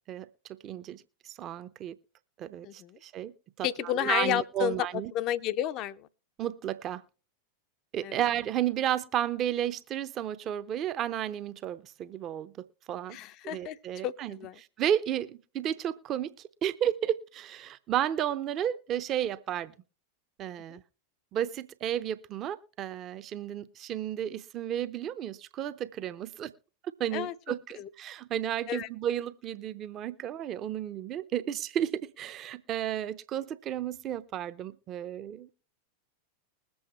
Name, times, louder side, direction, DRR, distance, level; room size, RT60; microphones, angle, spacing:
voice 1, 0.6-1.9 2.4-3.3 3.6-5.1 6.4-7.0 7.9-12.5 12.9-13.2 13.4-14.4 14.8-16.3 16.6-19.7 20.4-20.8 21.3-26.5 27.0-35.5, right 10 dB, 30° right, 0.7 m, -32 dB
voice 2, 2.6-3.0 3.6-4.8 5.1-6.1 8.0-8.2 13.1-13.8 14.0-14.5 20.7-20.8 27.1-27.3 27.8-27.9 28.7-28.9, left 12 dB, 40° left, 0.6 m, -31 dB
21.0 x 7.9 x 3.1 m
figure-of-eight pair, 90°, 0 cm